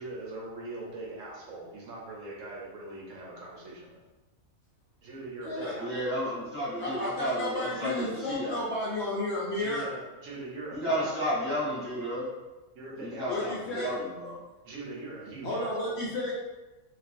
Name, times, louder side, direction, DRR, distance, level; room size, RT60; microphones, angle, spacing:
voice 1, 0.0-4.0 5.0-6.1 9.5-11.5 12.7-13.9 14.6-16.0, right 2 dB, 70° right, -3 dB, 0.9 m, -41 dB
voice 2, 5.8-8.6 10.7-12.3 13.0-14.4, equal, 15° left, -10 dB, 0.6 m, -32 dB
voice 3, 6.8-9.9 13.3-13.9 15.4-16.3, left 1 dB, 65° left, -6 dB, 0.7 m, -32 dB
2.4 x 2.3 x 2.4 m, 1.1 s
omnidirectional pair, 1.5 m